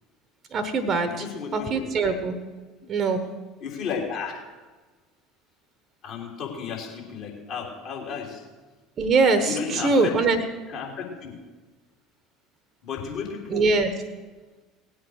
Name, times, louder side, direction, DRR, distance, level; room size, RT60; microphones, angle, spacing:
voice 1, 0.5-1.1 1.5-2.4 2.9-3.3 9.0-10.4 13.5-13.9, right 3 dB, 40° right, 10 dB, 1.2 m, -22 dB
voice 2, 1.1-1.9 3.6-4.4 6.0-8.4 9.4-10.3 10.7-11.4 12.8-13.7, left 6 dB, 50° left, -1 dB, 3.5 m, -33 dB
18.5 x 8.0 x 6.5 m, 1.3 s
figure-of-eight pair, 65°, 0 cm